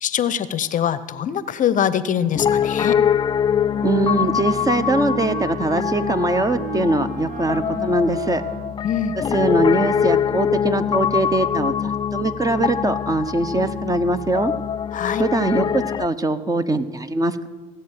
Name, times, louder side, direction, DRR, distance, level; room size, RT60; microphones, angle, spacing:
voice 1, 0.0-3.0 8.8-9.2 14.9-15.2, left 9 dB, 45° left, 15 dB, 0.8 m, -23 dB
Piano, 2.3-16.1, left 8 dB, 25° left, 0.3 m, -23 dB
Wind instrument woodwind instrument, 3.5-9.0, right 7 dB, 50° right, 1.3 m, -35 dB
voice 2, 3.8-8.4 9.3-14.5 15.2-17.5, right 2 dB, 20° right, 11 dB, 1.1 m, -22 dB
16.5 x 7.9 x 7.6 m, 1.3 s
hypercardioid pair, 70°, 19 cm